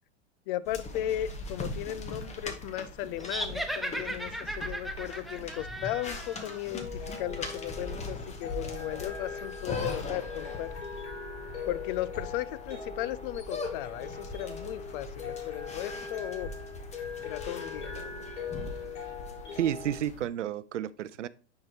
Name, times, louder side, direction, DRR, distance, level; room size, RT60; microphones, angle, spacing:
voice 1, 0.5-10.7 11.7-16.5 17.2-18.1, left 13 dB, 50° left, 0.5 m, -36 dB
sound 1, 0.7-20.3, left 2 dB, 20° left, 1.1 m, -41 dB
sound 2, 3.2-6.6, right 1 dB, ahead, 0.5 m, -36 dB
sound 3, 6.5-20.0, left 6 dB, 75° left, 2.8 m, -41 dB
voice 2, 19.6-21.3, right 11 dB, 85° right, 0.5 m, -31 dB
9.3 x 4.7 x 2.8 m
hypercardioid pair, 110°, 35 cm